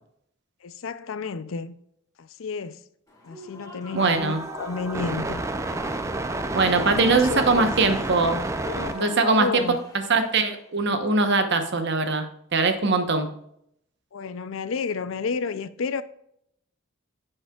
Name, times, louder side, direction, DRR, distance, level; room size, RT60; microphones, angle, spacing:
voice 1, 0.6-1.8 2.2-2.8 3.2-5.4 6.8-7.7 8.6-9.8 14.1-16.0, left 5 dB, 65° left, 0.5 m, -31 dB
Human voice / Cheering / Applause, 3.1-10.7, equal, 15° left, 1.7 m, -46 dB
voice 2, 3.9-4.4 6.5-8.4 8.9-9.5 9.9-12.3 12.5-13.3, right 3 dB, 55° right, 1.0 m, -22 dB
sound 1, 4.0-9.2, right 2 dB, 15° right, 0.5 m, -30 dB
10.5 x 6.5 x 2.4 m
head